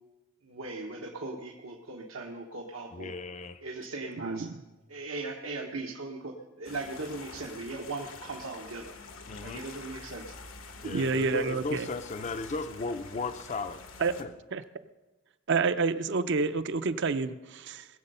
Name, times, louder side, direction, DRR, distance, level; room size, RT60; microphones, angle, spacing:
voice 1, 0.4-3.1 3.6-4.5 4.9-8.9 9.4-10.3, right 3 dB, 85° right, -1 dB, 1.2 m, -39 dB
voice 2, 2.9-3.6 9.3-9.6 10.8-13.8 14.2-14.3, left 3 dB, 35° left, 10 dB, 0.5 m, -36 dB
voice 3, 4.2-4.5 10.8-11.9 14.0-14.1 14.5-14.6 15.5-17.9, right 4 dB, 60° right, 12 dB, 0.6 m, -28 dB
sound 1, 6.6-14.2, left 4 dB, 80° left, 1.2 m, -47 dB
20.5 x 7.7 x 5.5 m, 1.1 s
head